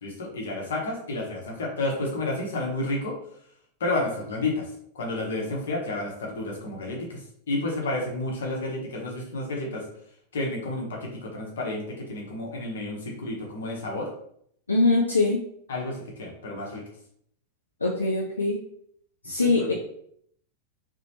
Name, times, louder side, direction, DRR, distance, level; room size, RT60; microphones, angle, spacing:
voice 1, 0.0-3.2 3.8-9.9 10.3-14.1 15.7-16.8 19.4-19.7, left 2 dB, 60° left, 0 dB, 0.7 m, -31 dB
voice 2, 14.7-15.4 17.8-18.6 19.2-19.7, left 3 dB, 80° left, 0 dB, 0.3 m, -22 dB
2.9 x 2.0 x 2.8 m, 0.68 s
figure-of-eight pair, 90°, 0 cm